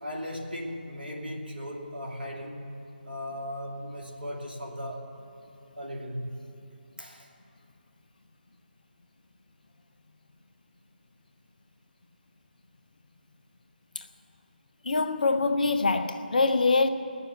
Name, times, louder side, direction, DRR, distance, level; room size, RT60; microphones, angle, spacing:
voice 1, 0.0-2.7 3.1-5.1 5.8-6.4 7.0-7.3, equal, 75° right, 2.3 m, -37 dB
voice 2, 14.8-16.9, left 3 dB, 55° left, 0.8 m, -24 dB
20.0 x 7.0 x 8.2 m
figure-of-eight pair, 150°, 5 cm